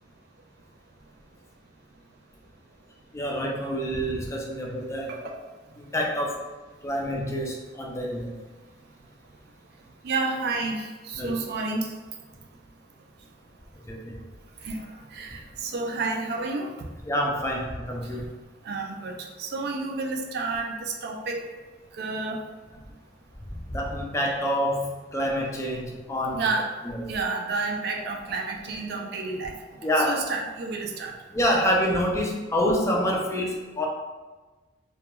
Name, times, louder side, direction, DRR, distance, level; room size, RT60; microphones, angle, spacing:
voice 1, 3.1-5.2 5.8-6.4 6.8-8.3 11.1-11.3 13.9-14.1 17.1-18.3 23.6-26.4 26.9-27.0 29.8-30.2 31.3-33.9, equal, 15° left, -1 dB, 0.4 m, -27 dB
voice 2, 10.0-11.9 14.6-16.9 18.0-18.3 18.6-21.5 21.9-22.4 26.3-29.6 30.0-31.1, right 3 dB, 60° right, 2 dB, 0.3 m, -30 dB
2.3 x 2.2 x 2.8 m, 1.2 s
head